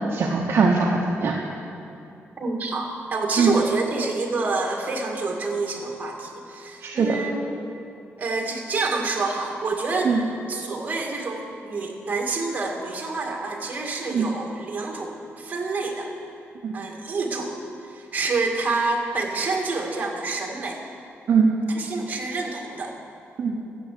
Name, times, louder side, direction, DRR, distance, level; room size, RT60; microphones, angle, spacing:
voice 1, 0.1-1.3 3.4-3.5 6.8-7.1 10.0-10.2 14.1-14.3 16.6-16.7 21.3-21.5 23.4-23.6, right 5 dB, 50° right, -1 dB, 1.1 m, -20 dB
voice 2, 2.4-7.6 8.2-10.1 10.5-16.1 16.7-17.5 17.9-20.8 21.7-22.9, right 3 dB, 35° right, 1 dB, 1.8 m, -28 dB
14.5 x 7.1 x 8.3 m, 2.7 s
wide cardioid pair, 155°, 5 cm